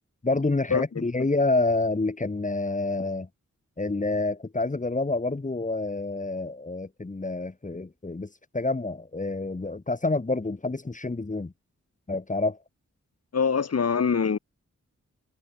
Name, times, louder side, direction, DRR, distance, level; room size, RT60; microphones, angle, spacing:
voice 1, 0.2-3.3 3.8-8.3 8.5-11.5 12.1-12.6, left 2 dB, 25° left, 1.8 m, -28 dB
voice 2, 13.3-14.4, left 6 dB, 55° left, 1.6 m, -23 dB
wide cardioid pair, 110°, 29 cm